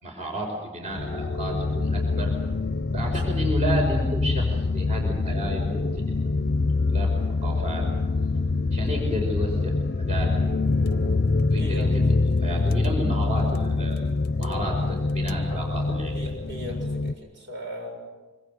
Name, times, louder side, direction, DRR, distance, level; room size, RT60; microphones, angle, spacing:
voice 1, 0.0-2.3 2.9-4.5 4.7-6.0 6.9-7.1 7.4-7.8 8.7-10.5 10.8-14.0 14.4-16.2, equal, 35° right, 1 dB, 5.1 m, -32 dB
sound 1, 0.9-17.1, left 3 dB, 50° left, 0.7 m, -25 dB
voice 2, 11.6-12.2 16.1-18.1, equal, 70° right, 2 dB, 6.9 m, -38 dB
25.5 x 25.0 x 6.5 m, 1.2 s
head